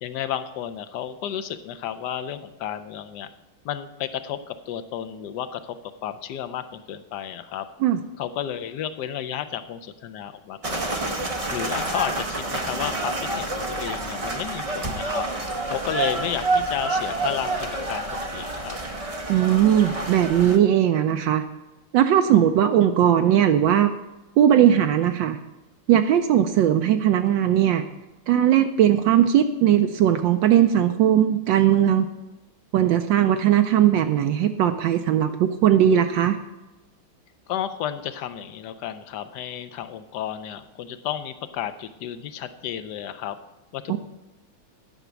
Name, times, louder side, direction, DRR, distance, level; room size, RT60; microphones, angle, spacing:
voice 1, 0.0-3.3 3.6-5.8 6.0-7.7 8.2-10.9 11.5-15.3 15.7-17.6 17.9-18.8 37.5-43.4 43.7-44.0, left 10 dB, 70° left, 11 dB, 1.0 m, -32 dB
sound 1, 10.6-20.6, right 2 dB, 50° right, 0.4 m, -28 dB
voice 2, 19.3-21.4 21.9-23.9 24.4-25.4 25.9-27.8 28.3-32.1 32.7-36.4 43.9-44.0, right 10 dB, 75° right, 7 dB, 1.2 m, -19 dB
10.0 x 5.9 x 8.0 m, 1.0 s
omnidirectional pair, 2.3 m